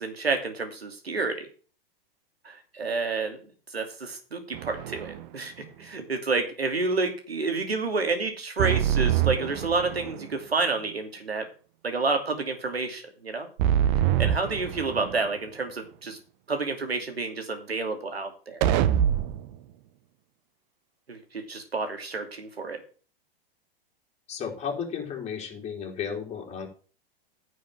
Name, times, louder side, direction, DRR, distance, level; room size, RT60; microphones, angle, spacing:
voice 1, 0.0-1.5 2.4-3.4 3.7-11.5 11.8-13.5 14.2-16.2 16.5-18.6 21.1-22.8, right 3 dB, 85° right, 6 dB, 2.7 m, -29 dB
sound 1, 4.5-5.3 8.6-10.3 13.6-15.3 18.6-19.5, right 10 dB, 50° right, 1.1 m, -25 dB
voice 2, 24.3-26.7, left 7 dB, 20° left, 0 dB, 4.0 m, -33 dB
10.5 x 6.3 x 7.5 m, 0.39 s
hypercardioid pair, 105°, 30 cm